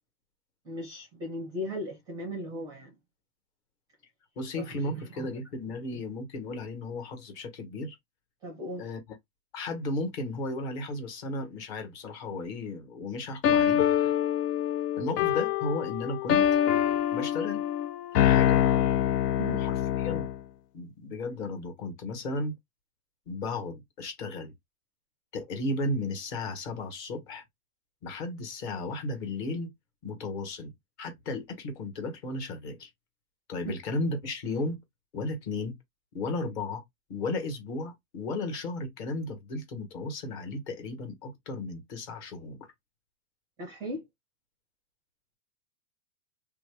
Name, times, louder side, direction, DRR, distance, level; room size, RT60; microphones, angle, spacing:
voice 1, 0.6-2.9 4.5-5.3 8.4-8.8 19.4-19.6 33.6-33.7 43.6-44.1, equal, 10° right, 0.5 m, -37 dB
voice 2, 4.4-8.0 8.8-9.0 9.5-14.1 15.0-16.4 17.1-17.7 18.1-18.6 19.4-20.3 20.7-22.5 23.3-24.5 25.3-27.4 28.0-29.7 30.0-30.7 31.0-32.9 33.5-34.8 35.1-35.7 36.1-36.8 37.1-42.6, left 2 dB, 40° left, 1.4 m, -34 dB
sound 1, 13.4-20.4, left 10 dB, 75° left, 0.6 m, -25 dB
2.8 x 2.3 x 3.4 m
hypercardioid pair, 145°, 48 cm